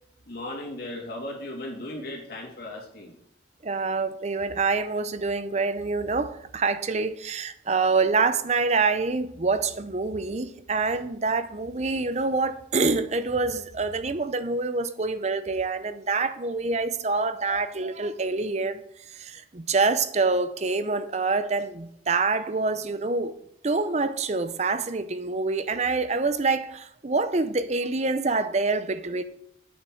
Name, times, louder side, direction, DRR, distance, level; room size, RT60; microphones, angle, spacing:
voice 1, 0.3-3.1, left 1 dB, 50° left, 3.0 m, -36 dB
voice 2, 3.6-18.8 19.1-23.3 23.6-29.2, right 3 dB, 35° right, 0.6 m, -26 dB
8.8 x 6.6 x 6.3 m
head